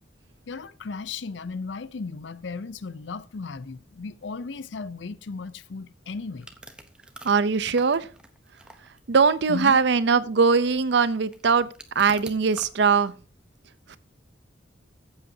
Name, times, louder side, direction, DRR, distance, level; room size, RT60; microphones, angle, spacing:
voice 1, 0.5-6.5 9.5-9.8, left 4 dB, 70° left, 0.6 m, -35 dB
sound 1, 6.4-12.7, right 1 dB, 5° right, 0.8 m, -47 dB
voice 2, 7.2-8.1 9.1-11.7 11.9-13.1 13.9-14.0, right 5 dB, 65° right, 0.6 m, -21 dB
14.0 x 8.0 x 2.7 m
head